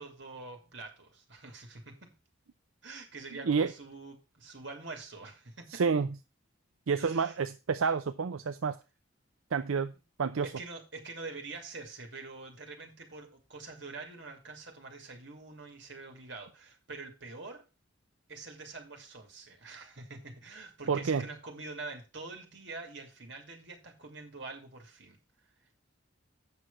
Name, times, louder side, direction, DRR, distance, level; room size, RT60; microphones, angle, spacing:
voice 1, 0.0-2.1 2.8-5.8 7.0-7.4 7.8-7.9 10.4-17.6 18.3-25.2, right 3 dB, 60° right, 2.6 m, -45 dB
voice 2, 5.7-6.1 6.9-8.8 9.5-9.9 10.2-10.5 20.9-21.2, right 5 dB, 80° right, 0.5 m, -29 dB
8.4 x 6.3 x 5.5 m
head